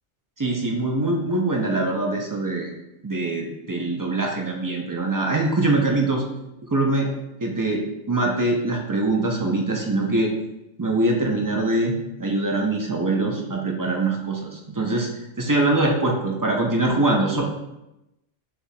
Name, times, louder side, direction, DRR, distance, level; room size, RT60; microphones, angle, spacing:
voice 1, 0.4-2.7 3.0-6.2 6.7-7.1 7.4-10.3 10.8-11.9 12.2-15.1 15.4-17.4, right 2 dB, 30° right, 0 dB, 0.3 m, -23 dB
6.9 x 2.4 x 2.7 m, 0.92 s
omnidirectional pair, 1.2 m